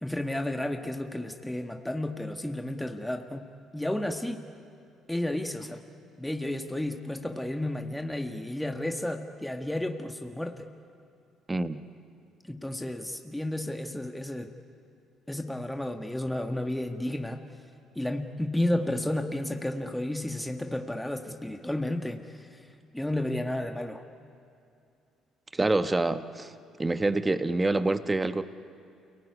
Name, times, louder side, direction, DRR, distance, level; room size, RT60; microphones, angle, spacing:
voice 1, 0.0-3.5 3.7-4.5 5.1-5.8 6.2-10.7 12.4-14.5 15.3-17.4 17.9-22.7 22.9-24.0, left 1 dB, 5° left, 5 dB, 1.7 m, -32 dB
voice 2, 11.5-11.8 25.5-26.5 26.8-28.4, right 2 dB, 20° right, 10 dB, 1.1 m, -26 dB
28.5 x 18.5 x 9.7 m, 2.6 s
hypercardioid pair, 55°, 0 cm